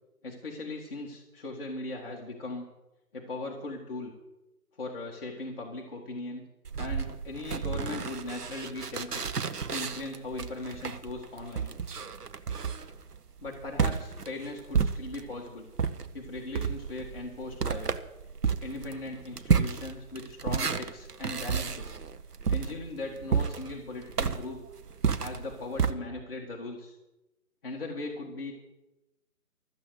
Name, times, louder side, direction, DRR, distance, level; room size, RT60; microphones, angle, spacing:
voice 1, 0.2-2.7 3.1-4.1 4.8-6.4 6.8-9.2 9.7-11.7 13.4-15.7 16.1-17.9 18.6-22.0 22.5-24.6 25.2-26.9 27.6-28.5, left 2 dB, 40° left, -1 dB, 1.7 m, -38 dB
sound 1, 6.6-15.4 15.8-25.9, right 6 dB, 85° right, 1.1 m, -31 dB
13.5 x 7.8 x 8.1 m, 0.98 s
figure-of-eight pair, 165°, 45 cm